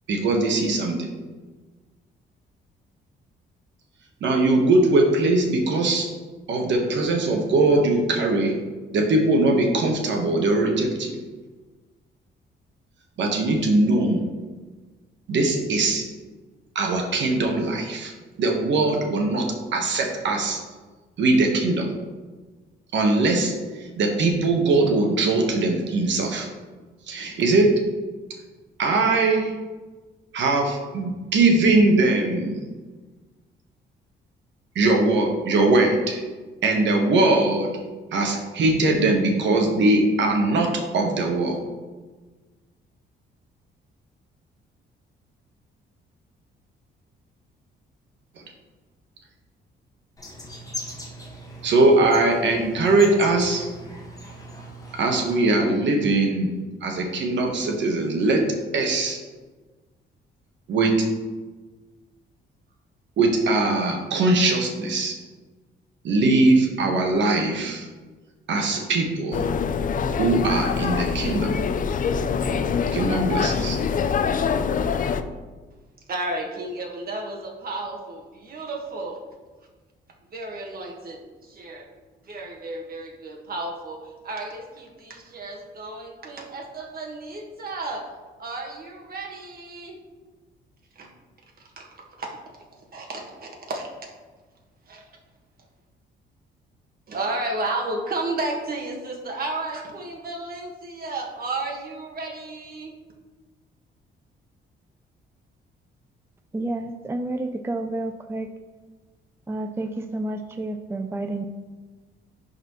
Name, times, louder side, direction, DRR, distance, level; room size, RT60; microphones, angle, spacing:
voice 1, 0.1-1.1 4.2-6.1 6.5-8.6 8.9-11.2 13.2-14.3 15.3-16.0 16.7-18.1 18.4-20.6 21.2-21.9 22.9-26.5 27.1-27.7 28.8-29.5 30.3-32.6 34.7-36.2 36.6-37.7 38.1-41.6 48.4-48.5 51.6-53.7 55.0-56.5 56.8-58.4 58.7-59.2 60.7-61.0 63.2-65.2 66.0-67.9 68.5-69.5 70.2-71.5 72.9-73.8, right 2 dB, 70° right, 2 dB, 1.2 m, -21 dB
sound 1, 50.2-55.4, equal, 15° left, 1.6 m, -39 dB
sound 2, 69.3-75.2, left 6 dB, 45° left, 0.5 m, -24 dB
voice 2, 76.1-79.2 80.3-81.8 82.2-84.0 84.2-88.0 88.4-90.0 90.9-91.1 91.6-92.6 92.9-94.1 94.9-95.0 97.1-102.9, right 2 dB, 50° right, 0 dB, 1.6 m, -33 dB
voice 3, 106.5-108.5 109.5-111.4, right 2 dB, 10° right, 6 dB, 0.4 m, -30 dB
10.5 x 4.1 x 3.1 m, 1.3 s
cardioid pair, 90°, 20 cm